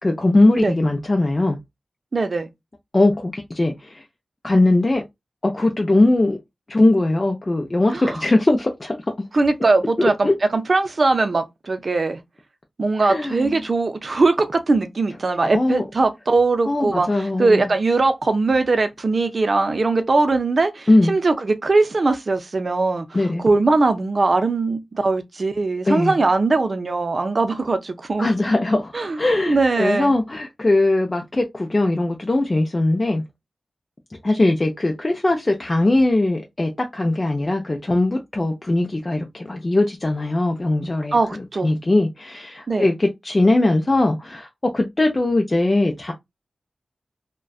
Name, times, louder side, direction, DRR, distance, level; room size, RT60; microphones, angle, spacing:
voice 1, 0.0-1.6 2.9-4.0 4.4-5.0 5.4-6.4 6.7-9.0 10.0-10.3 13.0-13.5 15.5-15.8 16.7-17.6 20.9-21.2 23.1-23.4 25.9-26.1 28.2-33.2 34.2-46.1, left 2 dB, 35° left, 0.4 m, -20 dB
voice 2, 2.1-2.5 7.9-8.2 9.3-12.2 12.8-23.1 23.4-28.3 28.9-29.2 29.5-30.1 41.1-41.7 42.7-42.9, right 3 dB, 60° right, 0.5 m, -20 dB
2.5 x 2.2 x 2.3 m
cardioid pair, 55°, 0 cm